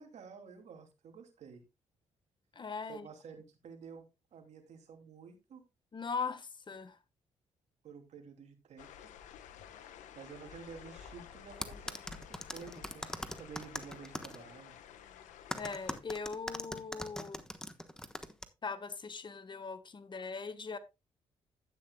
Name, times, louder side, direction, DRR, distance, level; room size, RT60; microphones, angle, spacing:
voice 1, 0.0-1.6 2.9-5.6 7.8-9.1 9.7-14.8, right 6 dB, 65° right, 2.9 m, -51 dB
voice 2, 2.5-3.1 5.9-7.0 15.5-17.4 18.6-20.8, left 5 dB, 40° left, 1.4 m, -40 dB
sound 1, 8.8-16.0, left 8 dB, 85° left, 1.0 m, -52 dB
sound 2, 11.6-14.4 15.5-18.4, left 1 dB, 5° left, 1.2 m, -40 dB
12.0 x 8.9 x 2.3 m
supercardioid pair, 65°, 12 cm